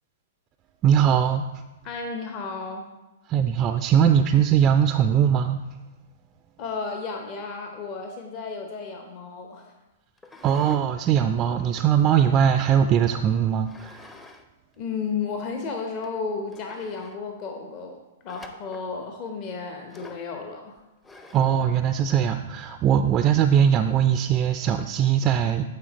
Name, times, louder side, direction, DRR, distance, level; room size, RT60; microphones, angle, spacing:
voice 1, 0.8-1.4 3.3-5.6 10.4-14.1 21.3-25.6, right 8 dB, 30° right, 8 dB, 0.3 m, -21 dB
voice 2, 1.8-2.9 6.6-9.7 14.8-18.0 18.2-20.8, left 4 dB, 40° left, 3 dB, 0.9 m, -33 dB
sound 1, 10.2-10.9 11.3-12.6 13.7-14.5 14.7-14.8 15.5-15.6 16.0-16.1 16.5-17.2 18.3-18.9 19.9-20.3 21.0-21.6, left 2 dB, 15° left, 0.6 m, -47 dB
8.6 x 4.3 x 3.9 m, 1.1 s
figure-of-eight pair, 110°, 0 cm